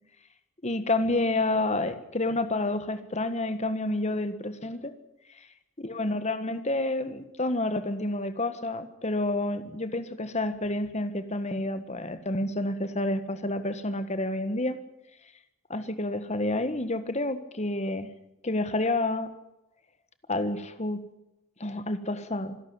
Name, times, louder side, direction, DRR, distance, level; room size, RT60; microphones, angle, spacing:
voice 1, 0.6-4.9 5.8-14.8 15.7-18.1 18.4-19.3 20.3-21.0 21.6-22.6, left 2 dB, 30° left, 11 dB, 1.5 m, -29 dB
26.0 x 11.5 x 9.7 m, 0.91 s
head